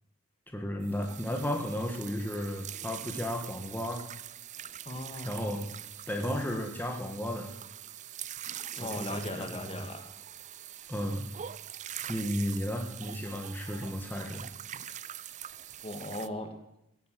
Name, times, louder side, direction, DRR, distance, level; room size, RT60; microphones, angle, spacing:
voice 1, 0.5-4.0 5.2-5.6 6.1-7.5 8.8-9.9 10.9-11.3 12.1-14.5, equal, 10° left, 2 dB, 1.7 m, -34 dB
Washing dishes, 0.8-16.3, right 11 dB, 35° right, 0.5 m, -44 dB
voice 2, 4.8-5.7 8.7-10.0 15.8-16.5, left 1 dB, 30° left, 6 dB, 1.9 m, -38 dB
18.0 x 9.3 x 7.8 m, 0.83 s
head